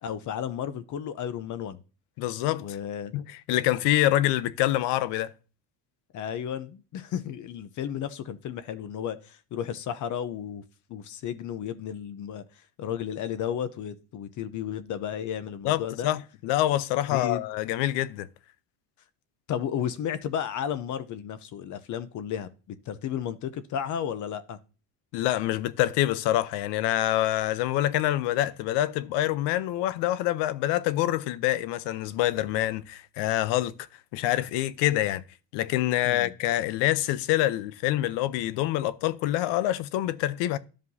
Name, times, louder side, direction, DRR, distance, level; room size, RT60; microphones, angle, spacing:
voice 1, 0.0-1.8 2.6-3.1 6.1-10.6 10.9-16.1 17.1-17.5 19.5-24.6 36.0-36.3, left 9 dB, 45° left, 0.7 m, -33 dB
voice 2, 2.2-2.6 3.1-3.2 3.5-5.3 15.6-18.3 25.1-33.7 34.1-35.2 35.5-40.6, left 14 dB, 75° left, 0.7 m, -26 dB
13.0 x 5.1 x 2.7 m
cardioid pair, 140°, 41 cm